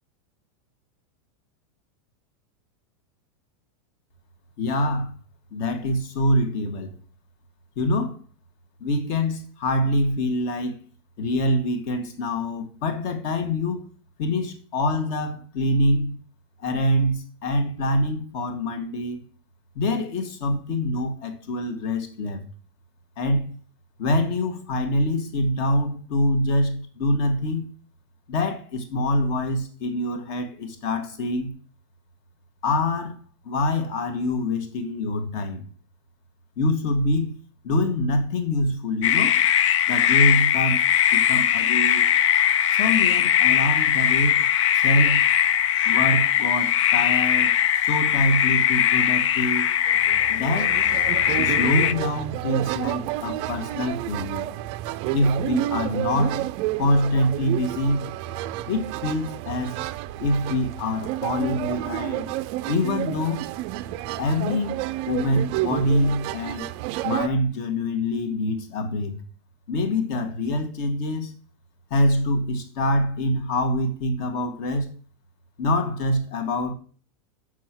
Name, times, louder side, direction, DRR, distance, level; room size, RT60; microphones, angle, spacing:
voice 1, 4.6-5.1 5.5-6.9 7.8-8.2 8.8-10.8 11.2-13.8 14.2-16.1 16.6-19.2 19.7-22.4 23.2-23.4 24.0-27.7 28.3-31.5 32.6-33.2 33.4-35.7 36.6-37.4 37.6-39.4 39.9-40.8 41.1-42.1 42.8-44.5 44.7-45.2 45.8-47.6 47.8-49.6 50.3-50.8 51.4-54.5 55.1-56.4 56.8-58.0 58.7-59.7 60.2-62.3 62.7-63.4 64.2-64.8 65.1-66.7 67.0-69.2 69.7-71.3 71.9-74.9 75.6-76.7, left 1 dB, 45° left, 1.7 m, -25 dB
sound 1, 39.0-51.9, left 10 dB, 75° left, 0.6 m, -20 dB
sound 2, 49.9-67.3, right 15 dB, 35° right, 0.4 m, -30 dB
7.5 x 6.3 x 6.1 m
supercardioid pair, 160°, 16 cm